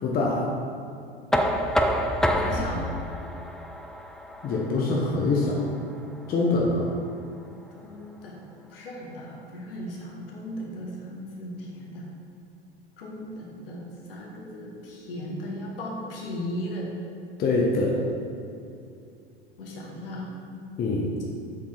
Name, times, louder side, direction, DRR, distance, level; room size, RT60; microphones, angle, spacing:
voice 1, 0.0-0.5 4.4-5.6 6.3-6.9 17.4-18.0 20.8-21.1, left 2 dB, 30° left, -2 dB, 1.1 m, -24 dB
Knock, 1.3-7.1, equal, ahead, 0.4 m, -28 dB
voice 2, 2.4-2.9 7.7-8.4 8.7-12.1 13.0-16.9 19.6-20.3, equal, 65° left, -2 dB, 1.8 m, -37 dB
7.7 x 6.8 x 4.0 m, 2.5 s
figure-of-eight pair, 75°, 30 cm